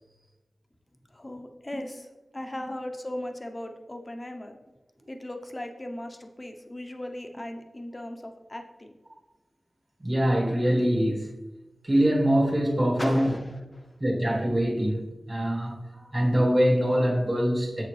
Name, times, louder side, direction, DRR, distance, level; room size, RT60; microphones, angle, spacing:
voice 1, 1.1-4.6 5.1-9.0 13.0-14.0, left 1 dB, 30° left, 5 dB, 0.9 m, -38 dB
voice 2, 10.0-11.3 11.8-13.3 14.0-17.8, equal, 25° right, -1 dB, 1.7 m, -24 dB
7.1 x 6.8 x 3.3 m, 1.1 s
wide cardioid pair, 65°, 0 cm